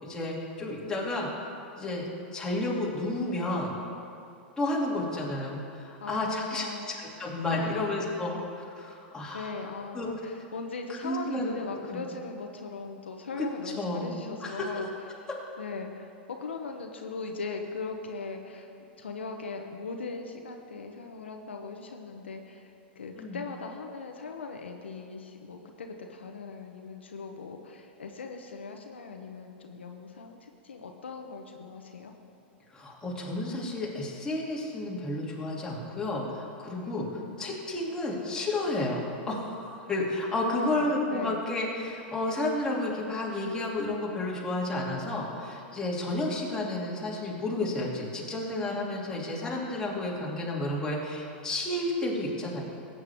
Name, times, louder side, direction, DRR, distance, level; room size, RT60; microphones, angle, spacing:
voice 1, 0.0-1.3 1.8-3.7 4.6-6.7 7.2-8.3 8.8-9.5 9.9-10.1 10.9-11.5 11.9-12.0 13.4-13.5 13.8-14.1 14.4-14.7 23.2-23.4 32.7-37.1 37.4-52.6, left 2 dB, 10° left, -4 dB, 2.6 m, -31 dB
voice 2, 6.0-7.2 7.5-8.5 9.3-14.9 15.2-15.3 15.6-18.7 19.0-32.1 36.8-37.5 40.3-41.4, left 4 dB, 90° left, 3 dB, 0.9 m, -39 dB
17.0 x 8.6 x 3.5 m, 2.8 s
hypercardioid pair, 105°, 6 cm